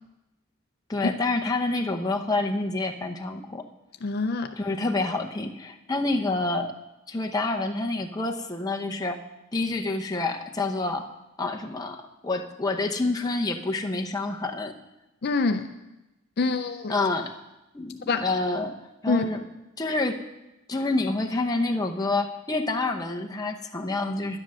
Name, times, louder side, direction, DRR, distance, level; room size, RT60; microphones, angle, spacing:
voice 1, 0.9-3.6 4.6-6.7 7.1-9.2 9.5-11.1 11.4-14.7 16.9-17.3 17.7-18.8 19.0-19.4 19.8-20.2 20.7-24.4, left 2 dB, 15° left, 2 dB, 0.8 m, -28 dB
voice 2, 4.0-4.6 15.2-15.7 16.4-16.9 18.1-18.3 19.1-19.3, left 3 dB, 45° left, 7 dB, 0.5 m, -25 dB
11.0 x 9.9 x 6.2 m, 0.98 s
head